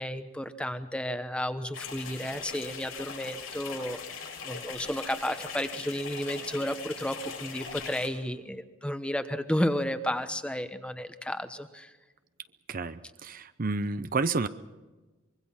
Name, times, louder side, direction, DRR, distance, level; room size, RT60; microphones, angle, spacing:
voice 1, 0.0-4.0 4.4-11.9, equal, 5° left, 10 dB, 1.0 m, -32 dB
sound 1, 1.7-8.1, left 5 dB, 85° left, 6.9 m, -40 dB
voice 2, 12.7-14.5, right 3 dB, 45° right, 12 dB, 0.6 m, -30 dB
25.0 x 22.5 x 5.7 m, 1.2 s
head